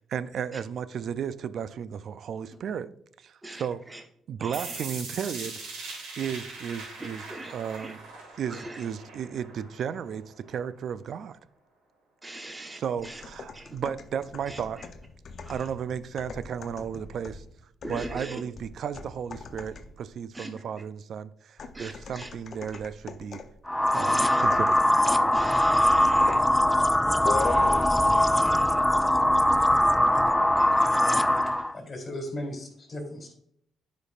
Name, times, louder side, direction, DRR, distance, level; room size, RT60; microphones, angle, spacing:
voice 1, 0.1-2.9 3.2-3.8 4.3-5.6 6.2-8.0 8.4-11.4 12.7-14.8 15.5-17.4 17.9-23.4 23.9-24.8, right 8 dB, 65° right, 0.4 m, -34 dB
voice 2, 3.4-4.0 4.4-4.9 7.0-8.0 8.5-8.9 12.2-13.2 13.5-13.7 14.5-14.9 15.4-15.7 17.8-18.4 20.3-20.6 21.7-22.3 23.9-24.5 25.3-26.5 28.0-28.9 30.5-31.3 31.6-31.7, right 1 dB, 15° right, 1.0 m, -42 dB
sound 1, 4.5-10.5, right 3 dB, 90° right, 2.5 m, -41 dB
sound 2, 13.0-20.1 21.6-23.6 24.4-25.2 25.5-25.7 26.2-26.5 27.3-28.2 28.5-28.6, left 5 dB, 55° left, 0.6 m, -40 dB
sound 3, 23.7-31.7, left 1 dB, 5° left, 0.4 m, -22 dB
voice 3, 31.7-33.3, left 1 dB, 35° left, 2.9 m, -36 dB
9.7 x 5.2 x 2.4 m
cardioid pair, 90°, 0 cm